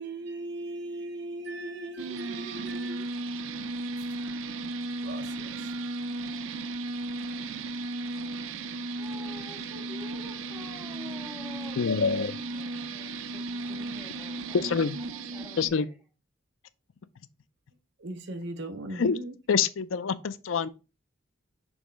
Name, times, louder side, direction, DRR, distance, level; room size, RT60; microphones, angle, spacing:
voice 1, 0.0-3.5 4.2-4.3 5.0-6.0 18.0-19.4, right 2 dB, 60° right, 0.9 m, -39 dB
sound 1, 2.0-15.7, right 2 dB, 85° right, 0.5 m, -35 dB
voice 2, 9.0-14.8 15.1-15.9, left 1 dB, ahead, 1.8 m, -48 dB
voice 3, 11.8-12.3 14.5-15.0 15.6-15.9 19.0-19.2 19.5-20.7, left 5 dB, 85° left, 0.5 m, -26 dB
6.3 x 3.1 x 5.0 m
head